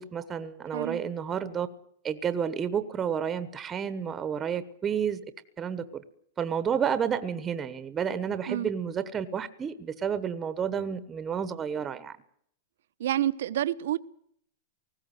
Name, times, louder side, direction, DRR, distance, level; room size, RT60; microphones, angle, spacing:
voice 1, 0.0-1.7 2.0-5.2 5.6-6.0 6.4-12.1, right 7 dB, 20° right, 1.1 m, -30 dB
voice 2, 0.7-1.0 8.5-8.7 13.0-14.0, right 12 dB, 75° right, 1.0 m, -28 dB
19.5 x 16.0 x 9.3 m
supercardioid pair, 155°, 0 cm